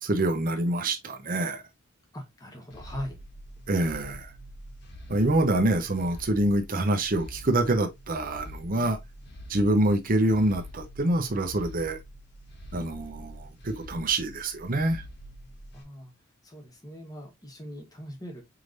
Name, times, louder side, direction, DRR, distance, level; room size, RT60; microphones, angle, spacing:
voice 1, 0.0-1.6 3.7-4.3 5.1-9.0 9.5-12.0 12.7-15.0, right 1 dB, 40° right, 0.8 m, -26 dB
voice 2, 2.1-3.2 15.7-16.1 16.4-18.4, equal, 15° left, 1.3 m, -40 dB
sound 1, 2.7-15.8, equal, 55° left, 1.3 m, -45 dB
4.8 x 3.3 x 2.5 m
head